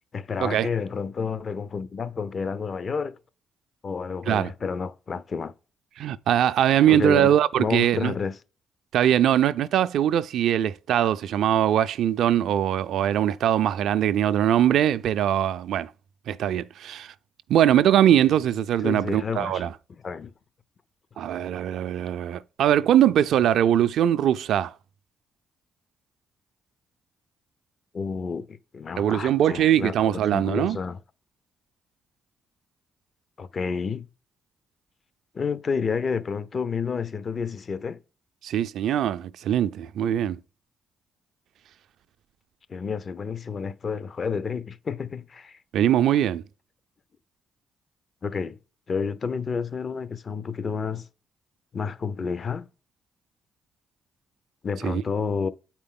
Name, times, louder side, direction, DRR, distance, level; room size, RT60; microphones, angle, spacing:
voice 1, 0.1-3.2 3.8-5.5 6.9-8.4 18.8-20.3 27.9-31.0 33.4-34.1 35.3-38.0 42.7-45.6 48.2-48.6 48.9-51.1 51.7-52.7 54.6-55.5, left 5 dB, 50° left, 0.6 m, -30 dB
voice 2, 6.0-8.1 8.9-15.9 16.3-17.1 17.5-19.7 21.2-24.7 29.0-30.8 38.4-40.4 45.7-46.4 54.8-55.0, right 10 dB, 75° right, 0.4 m, -22 dB
8.4 x 4.4 x 3.8 m
supercardioid pair, 55°, 0 cm